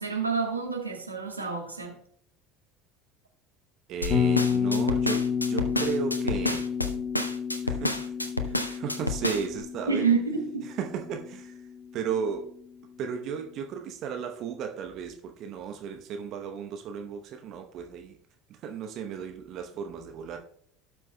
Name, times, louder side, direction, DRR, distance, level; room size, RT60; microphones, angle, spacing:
voice 1, 0.0-2.0 9.9-10.7, right 5 dB, 85° right, 1 dB, 1.4 m, -28 dB
voice 2, 3.9-6.7 7.6-8.1 8.4-10.1 10.8-11.6 11.9-12.5 13.0-18.2 18.6-20.4, right 7 dB, 45° right, 4 dB, 0.9 m, -35 dB
sound 1, 4.0-9.6, left 2 dB, 90° left, 0.5 m, -30 dB
Bass guitar, 4.1-12.2, left 6 dB, 40° left, 1.4 m, -30 dB
17.0 x 6.0 x 2.2 m, 0.63 s
figure-of-eight pair, 65°, 0 cm